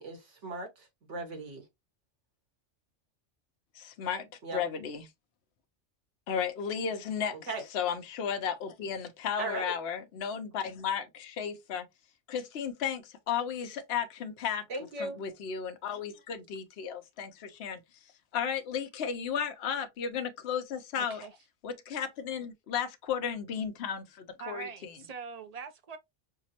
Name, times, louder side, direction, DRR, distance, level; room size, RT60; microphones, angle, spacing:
voice 1, 0.0-1.6 4.4-4.6 7.5-7.6 9.4-9.7 14.7-15.2, right 2 dB, 80° right, 1.6 m, -37 dB
voice 2, 3.7-4.3 4.5-5.1 6.3-7.4 7.7-11.9 12.3-14.6 15.0-17.8 18.3-21.3 21.6-24.9, left 7 dB, 65° left, 0.9 m, -34 dB
voice 3, 20.9-21.3 24.4-26.0, right 6 dB, 50° right, 0.5 m, -43 dB
5.8 x 2.0 x 2.8 m
omnidirectional pair, 1.2 m